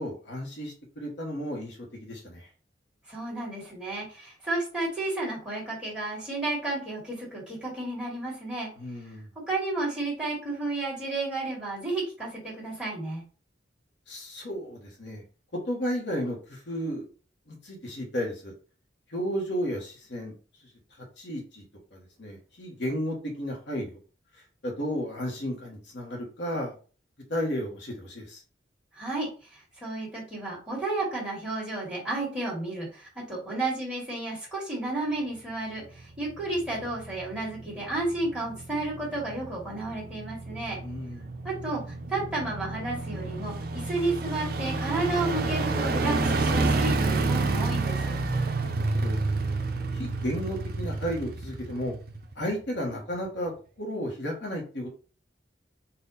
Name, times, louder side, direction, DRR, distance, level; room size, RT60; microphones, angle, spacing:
voice 1, 0.0-2.5 8.8-9.3 14.1-15.2 15.7-17.1 17.5-18.5 19.1-20.3 21.2-21.6 21.9-24.0 24.6-26.7 27.3-28.4 40.8-41.3 48.6-49.2 49.9-51.9 52.3-53.5 53.8-54.9, equal, 65° left, -1 dB, 1.2 m, -33 dB
voice 2, 3.1-8.7 9.5-13.2 28.9-40.8 41.4-41.8 42.1-48.2, right 2 dB, 5° right, -6 dB, 2.0 m, -32 dB
sound 1, 36.0-52.5 52.9-53.0, right 3 dB, 55° right, 0.5 m, -30 dB
4.3 x 2.5 x 4.0 m, 0.37 s
head